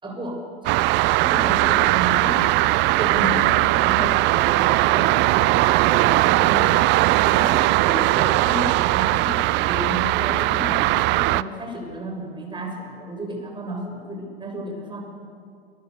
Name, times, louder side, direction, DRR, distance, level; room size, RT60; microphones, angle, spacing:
voice 1, 0.0-0.8 1.2-7.0 7.2-15.0, right 1 dB, 15° right, 2 dB, 6.8 m, -32 dB
sound 1, 0.7-11.4, right 19 dB, 35° right, 0.6 m, -19 dB
29.5 x 23.5 x 6.9 m, 2.4 s
figure-of-eight pair, 90°, 31 cm